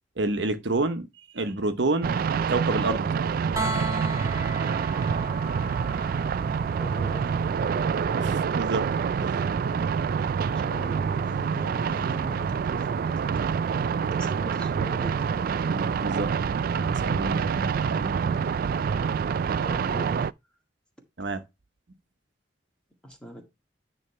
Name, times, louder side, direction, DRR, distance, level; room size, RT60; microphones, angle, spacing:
voice 1, 0.2-1.1 1.3-2.2 2.5-3.1 8.2-8.9 9.2-9.4 15.6-16.3 16.7-18.2 21.2-21.4, right 2 dB, 80° right, 1.0 m, -29 dB
sound 1, 2.0-20.3, right 6 dB, 55° right, 0.3 m, -27 dB
sound 2, 3.6-15.4 17.3-17.4, right 2 dB, 20° right, 1.2 m, -40 dB
voice 2, 6.8-7.6 10.5-13.1 14.0-15.5 17.2-17.4 19.6-20.3 23.0-23.4, equal, 5° left, 1.9 m, -42 dB
9.5 x 3.2 x 5.6 m
head